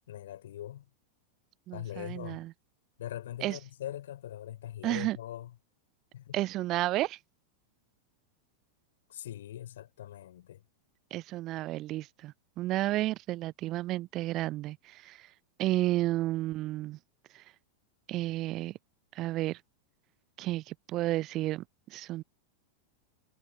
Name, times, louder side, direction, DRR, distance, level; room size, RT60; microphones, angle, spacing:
voice 1, 0.1-0.9 1.7-2.4 3.0-5.5 6.1-6.4 9.1-10.6, left 12 dB, 60° left, 5.3 m, -42 dB
voice 2, 1.7-2.5 3.4-3.6 4.8-5.2 6.3-7.2 11.1-15.2 15.6-17.0 18.1-18.7 19.2-19.6 20.4-21.6 21.9-22.2, right 16 dB, 35° right, 0.6 m, -32 dB
figure-of-eight pair, 90°, 0 cm